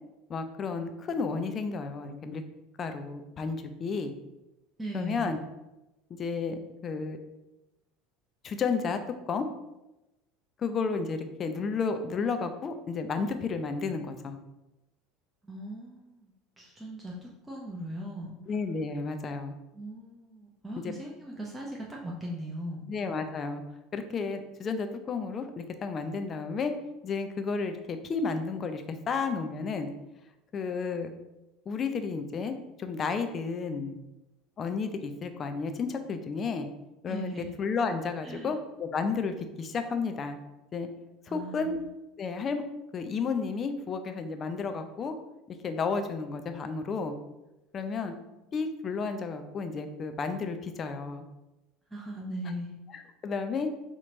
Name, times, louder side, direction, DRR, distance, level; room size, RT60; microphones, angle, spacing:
voice 1, 0.3-2.4 2.8-4.1 4.9-5.4 6.1-7.2 8.4-9.0 9.3-9.5 10.6-14.4 18.5-19.5 20.8-20.9 22.9-23.6 23.9-26.7 27.0-29.9 30.5-31.1 31.7-34.0 34.6-36.7 37.0-40.4 40.7-40.9 41.3-41.8 42.2-42.6 42.9-45.2 45.6-47.2 47.7-48.1 48.5-51.2 52.9-53.7, left 4 dB, 35° left, 8 dB, 0.5 m, -32 dB
voice 2, 4.8-5.4 15.4-18.4 19.7-22.9 37.1-37.5 38.2-38.6 41.3-41.9 47.9-48.6 51.9-52.7, right 1 dB, 10° right, -4 dB, 0.8 m, -39 dB
4.2 x 3.0 x 3.8 m, 0.98 s
figure-of-eight pair, 70°, 0 cm